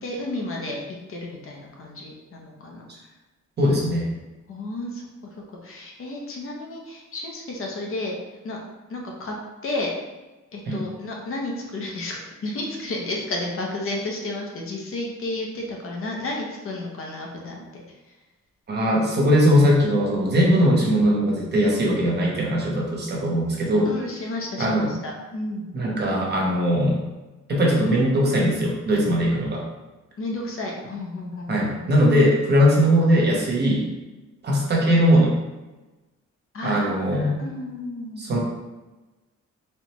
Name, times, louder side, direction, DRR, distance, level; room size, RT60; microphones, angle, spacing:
voice 1, 0.0-0.8 1.1-2.8 4.5-8.2 8.4-8.6 8.9-9.3 9.6-9.9 10.5-18.2 20.7-20.8 23.8-25.7 30.2-31.7 36.5-38.2, left 2 dB, 45° left, -1 dB, 0.6 m, -32 dB
voice 2, 3.6-4.1 10.7-10.8 18.7-23.9 24.6-24.9 25.7-27.0 27.5-29.6 31.5-33.9 34.4-35.3 36.6-37.4 38.2-38.4, equal, 35° right, -3 dB, 0.7 m, -20 dB
4.2 x 2.1 x 2.9 m, 1.1 s
wide cardioid pair, 180°, 30 cm